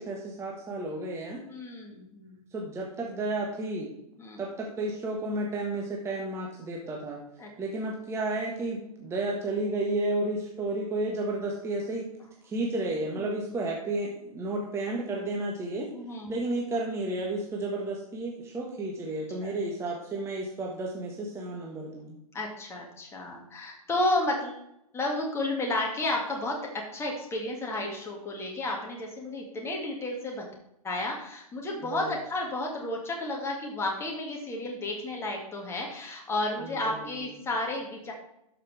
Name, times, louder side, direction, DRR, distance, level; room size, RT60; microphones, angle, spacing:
voice 1, 0.0-1.4 2.5-3.9 4.4-7.2 7.6-12.1 12.4-15.9 16.3-22.2 31.8-32.1 36.6-37.4, right 2 dB, 15° right, -1 dB, 1.4 m, -32 dB
voice 2, 1.5-2.3 4.2-4.4 7.4-7.5 15.9-16.4 19.4-19.6 22.3-24.6 24.9-26.6 26.9-30.4 30.8-38.1, left 2 dB, 15° left, 0 dB, 2.0 m, -32 dB
12.5 x 5.8 x 3.4 m, 0.81 s
hypercardioid pair, 120°, 19 cm